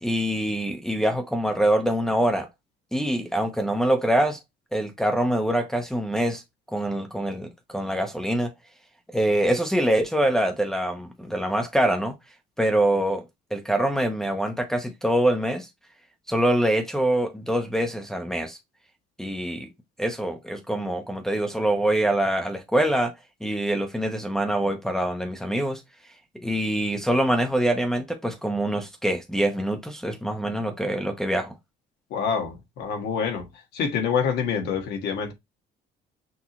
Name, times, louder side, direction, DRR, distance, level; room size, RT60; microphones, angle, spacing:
voice 1, 0.0-2.5 2.9-4.4 4.7-6.4 6.7-8.5 9.1-12.1 12.6-13.2 13.5-15.7 16.3-18.6 19.2-19.7 20.0-23.1 23.4-25.8 26.4-31.5, right 1 dB, 5° left, 0.8 m, -24 dB
voice 2, 32.1-33.5 33.7-35.3, left 6 dB, 75° left, 1.6 m, -26 dB
6.1 x 2.8 x 2.9 m
cardioid pair, 110°, 17 cm